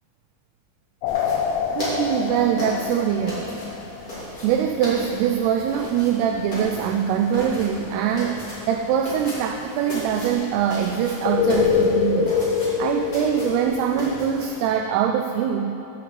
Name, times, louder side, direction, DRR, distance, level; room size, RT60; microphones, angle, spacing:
sound 1, 1.0-4.4 11.3-14.1, left 7 dB, 80° left, 2.5 m, -24 dB
sound 2, 1.0-14.6, equal, 25° left, 2.5 m, -35 dB
voice 1, 1.7-3.4 4.4-12.4 12.8-15.7, right 8 dB, 85° right, 5 dB, 2.5 m, -23 dB
8.5 x 7.7 x 7.5 m, 2.8 s
omnidirectional pair, 4.9 m